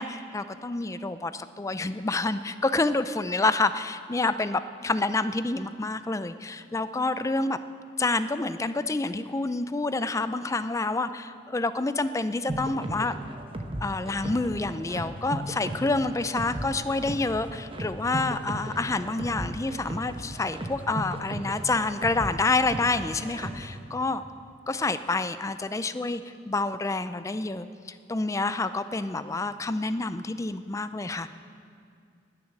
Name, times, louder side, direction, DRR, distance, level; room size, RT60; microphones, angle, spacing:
voice 1, 0.0-7.6 8.0-13.1 13.8-24.2 24.7-26.2 26.5-27.7 28.1-31.3, left 3 dB, 15° left, 12 dB, 0.4 m, -28 dB
sound 1, 12.5-23.8, right 1 dB, 30° right, 0.9 m, -36 dB
20.0 x 7.1 x 6.5 m, 2.3 s
head